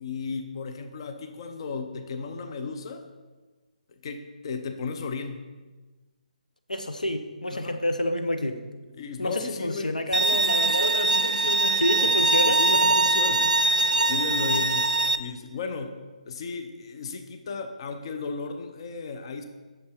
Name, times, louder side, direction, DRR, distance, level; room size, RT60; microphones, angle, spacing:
voice 1, 0.0-3.1 3.9-5.5 7.5-7.8 8.9-12.2 12.5-16.0 16.2-19.4, left 4 dB, 40° left, 7 dB, 0.7 m, -35 dB
voice 2, 6.7-8.6 9.2-11.2 11.8-13.5, left 1 dB, 75° left, 8 dB, 0.7 m, -29 dB
Bowed string instrument, 10.1-15.2, right 2 dB, 75° right, 0.5 m, -22 dB
8.4 x 6.5 x 4.4 m, 1.3 s
figure-of-eight pair, 140°, 4 cm